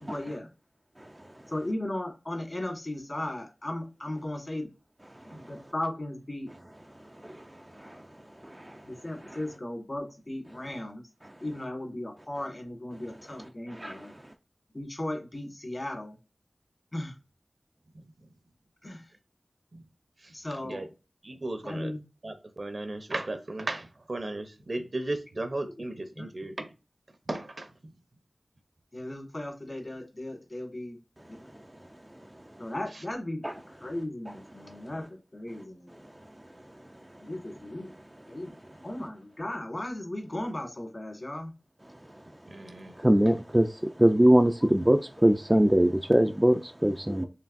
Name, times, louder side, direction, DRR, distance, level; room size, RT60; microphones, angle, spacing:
voice 1, 0.0-0.5 1.5-4.7 5.2-6.5 8.8-11.0 11.4-14.1 14.7-16.1 16.9-17.1 18.8-19.0 20.3-20.9 21.6-22.0 26.2-26.3 28.9-31.0 31.4-31.5 32.6-35.1 35.3-35.9 37.2-37.9 38.3-38.5 38.8-41.5 45.5-45.7 46.8-47.3, left 1 dB, 45° left, 1.5 m, -36 dB
voice 2, 8.4-8.8 9.2-9.4 13.7-14.0 33.4-33.5 43.0-43.7 44.0-47.2, right 1 dB, 20° right, 0.3 m, -22 dB
voice 3, 21.2-21.9 22.2-26.7 27.3-27.7 42.5-42.9, right 2 dB, 60° right, 0.7 m, -35 dB
4.5 x 3.2 x 2.5 m
wide cardioid pair, 55°, 0 cm